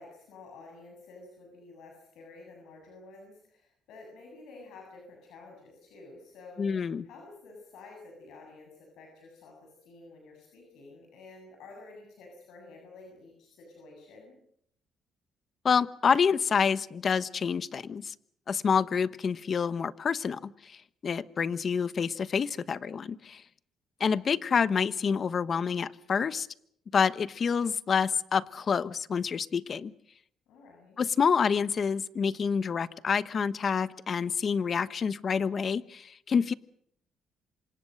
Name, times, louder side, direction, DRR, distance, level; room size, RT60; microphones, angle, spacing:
voice 1, 0.0-6.7 7.0-14.4 30.5-31.0, left 3 dB, 85° left, 1 dB, 7.8 m, -50 dB
voice 2, 6.6-7.0 15.6-18.1 18.5-23.4 24.0-26.5 26.9-29.9 31.0-36.5, left 6 dB, 45° left, 16 dB, 1.1 m, -28 dB
27.0 x 25.0 x 6.5 m, 0.69 s
cardioid pair, 105°, 0 cm